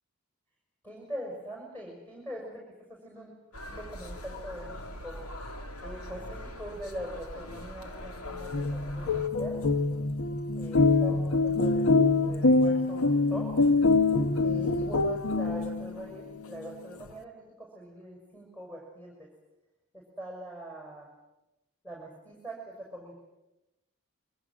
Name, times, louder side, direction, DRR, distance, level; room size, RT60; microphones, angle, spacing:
voice 1, 0.8-2.6 2.9-3.3 3.7-5.2 5.8-9.6 10.5-13.6 14.4-19.3 19.9-21.1 21.8-23.1, equal, 10° left, 0 dB, 6.3 m, -42 dB
sound 1, 3.5-9.3, equal, 85° left, 2.8 m, -42 dB
sound 2, 8.4-16.0, left 3 dB, 70° left, 1.1 m, -25 dB
27.0 x 24.5 x 7.6 m, 0.99 s
head